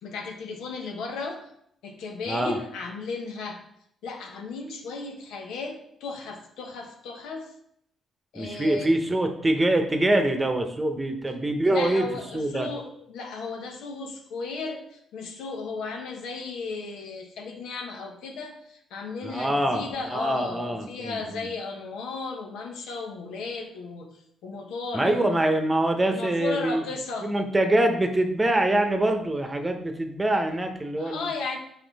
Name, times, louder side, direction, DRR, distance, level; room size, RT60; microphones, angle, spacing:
voice 1, 0.0-1.5 1.8-3.6 4.0-7.5 8.3-8.9 11.6-24.1 24.4-25.4 26.1-27.3 31.0-31.6, left 4 dB, 85° left, 2 dB, 1.0 m, -35 dB
voice 2, 2.3-2.6 8.3-12.1 12.3-12.7 19.2-21.5 24.9-26.8 27.2-31.3, right 1 dB, 15° right, 5 dB, 0.9 m, -24 dB
5.9 x 4.3 x 4.1 m, 0.73 s
cardioid pair, 90°, 0 cm